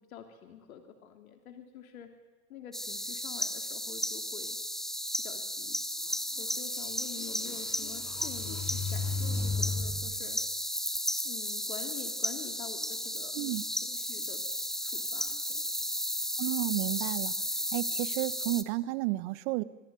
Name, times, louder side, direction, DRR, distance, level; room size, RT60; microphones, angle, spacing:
voice 1, 0.1-2.1 2.5-4.6 5.2-5.8 6.4-10.4 11.2-13.4 13.8-14.4 14.8-15.7, left 8 dB, 75° left, 5 dB, 2.9 m, -47 dB
sound 1, 2.7-18.6, equal, ahead, 1.2 m, -34 dB
sound 2, 6.4-6.5 7.0-10.1, left 3 dB, 35° left, 5.6 m, -35 dB
voice 2, 16.4-17.3 17.7-19.6, right 19 dB, 50° right, 16 dB, 1.3 m, -32 dB
24.5 x 21.0 x 9.4 m, 1.2 s
hypercardioid pair, 105°, 43 cm